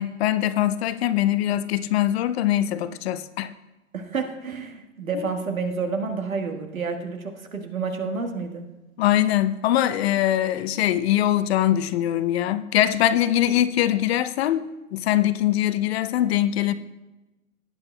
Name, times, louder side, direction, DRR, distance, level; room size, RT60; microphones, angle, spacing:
voice 1, 0.0-3.5 9.0-16.7, left 12 dB, 50° left, 0.7 m, -22 dB
voice 2, 3.9-8.6, right 4 dB, 90° right, 1.6 m, -29 dB
18.0 x 9.5 x 2.3 m
hypercardioid pair, 110°, 40 cm